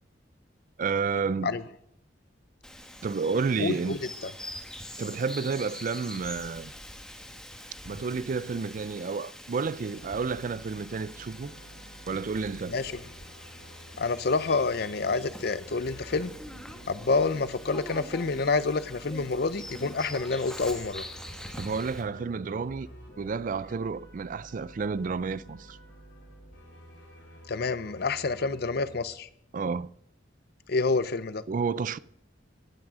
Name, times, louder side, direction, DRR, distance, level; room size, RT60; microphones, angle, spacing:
voice 1, 0.8-1.5 3.0-4.0 5.0-6.7 7.8-11.5 12.1-12.7 21.6-22.9 23.2-25.8 29.5-29.9 31.5-32.0, right 5 dB, 45° right, 0.4 m, -30 dB
Bird vocalization bird call bird song, 2.6-22.0, equal, 5° left, 1.3 m, -44 dB
voice 2, 3.6-4.3 12.7-13.0 14.0-16.3 16.9-21.0 27.5-29.3 30.7-31.4, left 3 dB, 55° left, 0.6 m, -28 dB
sound 1, 9.9-29.0, right 1 dB, 75° left, 2.7 m, -50 dB
15.5 x 6.1 x 6.2 m
head